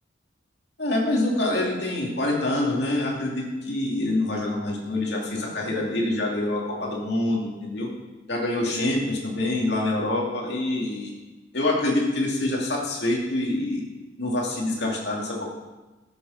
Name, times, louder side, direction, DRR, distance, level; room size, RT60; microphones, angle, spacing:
voice 1, 0.8-7.9 8.3-11.1 11.5-13.8 14.2-15.5, left 1 dB, 60° left, -2 dB, 2.6 m, -26 dB
13.5 x 6.9 x 5.8 m, 1.1 s
head